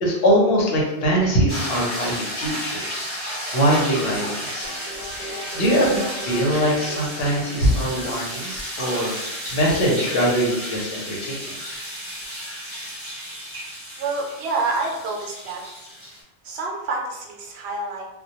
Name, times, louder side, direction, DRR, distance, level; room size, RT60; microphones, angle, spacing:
voice 1, 0.0-3.1 3.5-4.8 5.1-9.1 9.5-11.5, equal, 65° left, -2 dB, 0.9 m, -22 dB
sound 1, 1.5-16.2, equal, 15° right, 0.9 m, -33 dB
sound 2, 4.6-8.4, equal, 45° right, 0.7 m, -37 dB
voice 2, 14.0-15.6 16.4-18.1, right 3 dB, 75° right, -1 dB, 0.9 m, -27 dB
2.2 x 2.2 x 2.7 m, 0.97 s
omnidirectional pair, 1.1 m